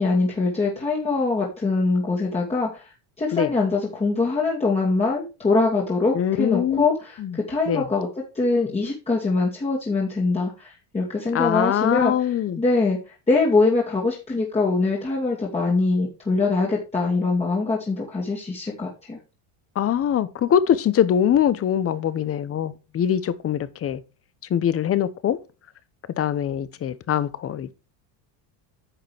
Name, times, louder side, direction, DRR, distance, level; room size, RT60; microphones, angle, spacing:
voice 1, 0.0-2.9 3.2-8.1 8.3-19.2, left 3 dB, 15° left, 2.2 m, -23 dB
voice 2, 6.1-6.9 7.2-7.4 7.7-7.8 11.3-12.6 19.8-24.0 24.5-25.4 26.2-27.7, left 9 dB, 30° left, 0.9 m, -23 dB
10.0 x 6.6 x 3.4 m
cardioid pair, 140°, 44 cm